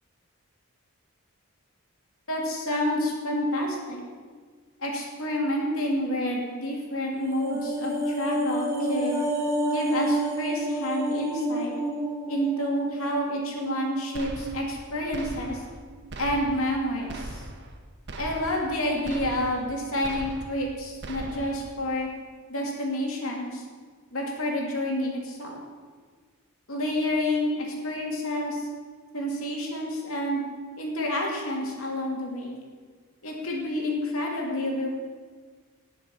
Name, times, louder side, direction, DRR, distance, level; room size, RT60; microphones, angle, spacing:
voice 1, 2.3-4.0 4.8-9.2 9.7-11.7 12.3-15.6 16.2-17.4 18.2-22.1 22.5-23.6 24.1-25.6 26.7-28.6 29.1-30.4 30.8-32.6 33.2-34.9, left 1 dB, 65° left, -1 dB, 2.8 m, -29 dB
sound 1, 7.1-15.6 15.9-16.0, right 1 dB, 15° right, 1.3 m, -30 dB
sound 2, 14.1-14.8 15.1-15.8 16.1-16.8 17.1-17.8 18.1-18.8 19.0-19.7 20.0-20.7 21.0-21.7, right 1 dB, 55° right, 1.2 m, -39 dB
19.0 x 6.4 x 5.7 m, 1.5 s
head